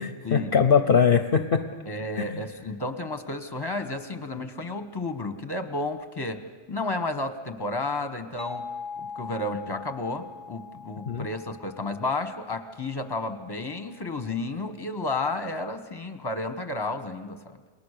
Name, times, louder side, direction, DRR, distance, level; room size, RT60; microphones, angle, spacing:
voice 1, 0.0-1.6 2.2-2.4 11.1-11.3, left 6 dB, 50° left, 9 dB, 1.0 m, -22 dB
voice 2, 1.8-6.4 6.7-8.7 9.0-17.6, left 2 dB, 20° left, 9 dB, 1.4 m, -32 dB
sound 1, 8.4-13.9, left 5 dB, 25° right, 1.3 m, -42 dB
29.0 x 20.5 x 6.7 m, 1.5 s
omnidirectional pair, 1.2 m